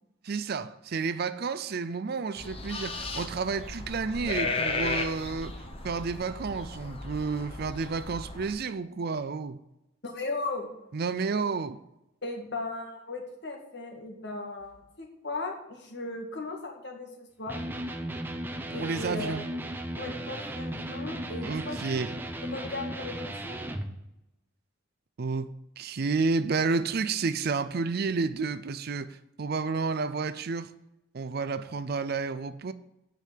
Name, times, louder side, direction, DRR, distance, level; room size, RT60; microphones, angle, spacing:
voice 1, 0.2-9.6 10.9-11.8 18.7-19.4 21.4-22.2 25.2-25.5 25.8-30.7 31.1-32.7, right 4 dB, 45° right, 0.4 m, -31 dB
sound 1, 2.4-8.5, left 3 dB, 25° left, 1.0 m, -35 dB
voice 2, 10.0-10.7 11.3-11.4 12.2-17.6 18.7-19.5 20.0-23.6, left 2 dB, 55° left, 1.9 m, -37 dB
Electric guitar, 17.5-23.9, right 1 dB, 10° right, 0.8 m, -36 dB
9.3 x 5.2 x 7.6 m
head